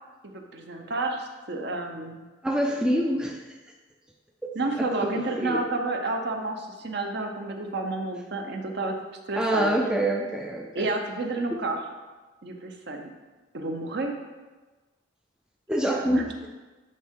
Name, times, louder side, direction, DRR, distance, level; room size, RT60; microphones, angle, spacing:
voice 1, 0.2-2.2 4.5-9.0 9.3-9.7 10.7-11.8 12.4-13.1 13.5-14.1 15.9-16.3, right 2 dB, 55° right, 4 dB, 0.7 m, -30 dB
voice 2, 2.4-3.4 4.4-5.7 9.4-10.9 15.7-16.2, right 1 dB, 5° right, 1 dB, 0.4 m, -26 dB
10.5 x 3.7 x 3.7 m, 1.2 s
head